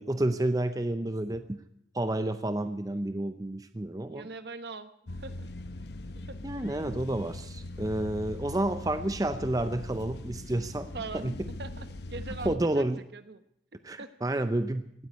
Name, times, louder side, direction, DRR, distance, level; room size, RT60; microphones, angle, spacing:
voice 1, 0.0-1.6 1.9-4.3 6.4-11.5 12.4-13.0 13.8-14.8, right 1 dB, 20° right, 10 dB, 0.6 m, -30 dB
voice 2, 4.1-4.9 5.2-5.5 6.3-6.4 10.9-11.3 11.6-13.4 14.0-14.1 14.3-14.4, right 3 dB, 65° right, 11 dB, 1.1 m, -41 dB
sound 1, 5.1-12.6, left 1 dB, 65° left, 0.8 m, -41 dB
18.0 x 9.5 x 8.3 m, 0.77 s
head